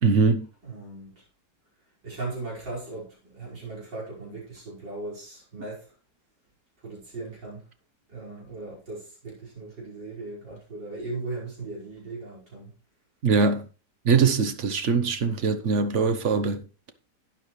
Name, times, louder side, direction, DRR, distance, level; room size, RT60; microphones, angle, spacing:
voice 1, 0.0-0.5 13.2-13.7 14.0-16.9, right 5 dB, 50° right, 1.1 m, -22 dB
voice 2, 0.6-1.2 2.0-6.0 6.8-7.7 8.1-12.8, right 2 dB, 85° right, 5.9 m, -38 dB
12.0 x 9.1 x 3.2 m
omnidirectional pair, 1.9 m